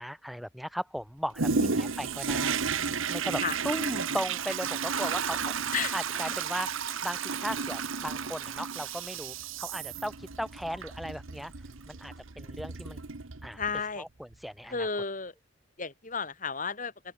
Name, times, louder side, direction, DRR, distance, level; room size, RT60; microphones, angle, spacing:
voice 1, 0.0-2.6 3.1-5.6 5.9-6.7 7.0-11.5 11.9-13.0 13.4-13.6 14.0-14.9, equal, ahead, 2.3 m, -37 dB
Toilet flush, 1.4-13.8 14.3-14.4, right 5 dB, 80° right, 1.3 m, -33 dB
voice 2, 5.7-6.3 13.6-14.1 14.7-15.3 15.8-16.9, left 5 dB, 40° left, 2.5 m, -33 dB
open air
head